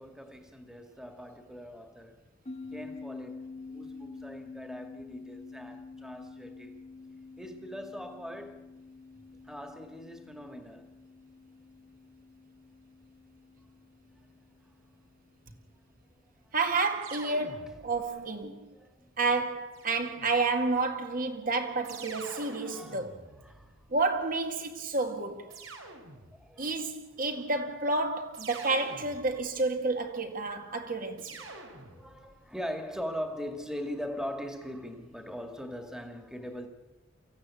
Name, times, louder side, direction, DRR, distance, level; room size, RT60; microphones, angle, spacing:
voice 1, 0.0-2.2 2.7-6.7 7.4-8.6 9.4-10.9 17.9-18.3 18.7-19.1 21.3-21.5 22.6-23.1 23.4-23.8 25.5-25.7 26.3-26.9 29.2-29.3 31.3-31.7 31.9-36.7, equal, 5° right, 2.1 m, -41 dB
sound 1, 2.5-15.2, left 4 dB, 35° left, 1.3 m, -48 dB
voice 2, 16.5-18.7 19.2-23.2 23.9-25.6 26.6-31.4, right 3 dB, 45° right, 2.0 m, -30 dB
sound 2, 17.0-18.2 19.7-20.6 21.8-24.2 25.5-26.6 28.3-29.7 31.2-32.4, right 3 dB, 80° right, 3.2 m, -47 dB
24.0 x 15.5 x 8.5 m
head